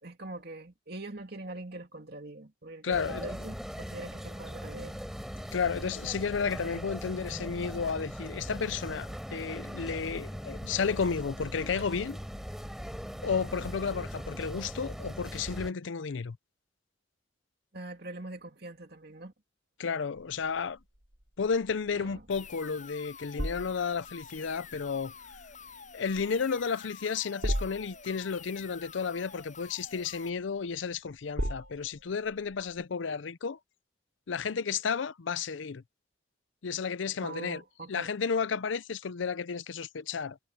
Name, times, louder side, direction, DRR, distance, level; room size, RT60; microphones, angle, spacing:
voice 1, 0.0-5.1 11.8-11.9 17.7-19.3 21.9-22.3 37.2-38.1, right 2 dB, 55° right, 2.6 m, -43 dB
voice 2, 2.8-3.3 5.5-12.2 13.2-16.4 19.8-20.8 21.4-25.1 25.9-33.6 34.3-35.8 36.6-37.6 37.9-40.4, left 5 dB, 85° left, 0.5 m, -32 dB
sound 1, 2.9-15.7, equal, ahead, 5.3 m, -40 dB
sound 2, 20.1-32.8, equal, 90° right, 4.6 m, -40 dB
sound 3, 22.3-30.3, left 6 dB, 40° left, 7.8 m, -49 dB
head